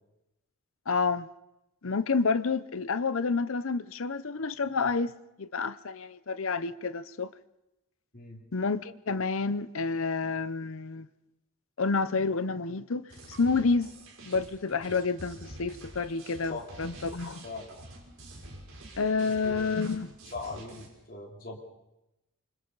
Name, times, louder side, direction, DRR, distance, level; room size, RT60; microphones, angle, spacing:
voice 1, 0.9-1.3 1.8-5.1 5.4-7.3 8.5-11.1 11.8-13.0 13.4-13.9 14.3-17.4 19.0-20.1, left 4 dB, 60° left, 0.7 m, -29 dB
voice 2, 8.1-8.5 16.5-16.7 17.4-17.8 19.4-19.7 20.3-21.6, left 3 dB, 40° left, 3.5 m, -40 dB
sound 1, 13.1-20.9, right 1 dB, 75° right, 6.0 m, -47 dB
27.5 x 25.5 x 4.0 m
head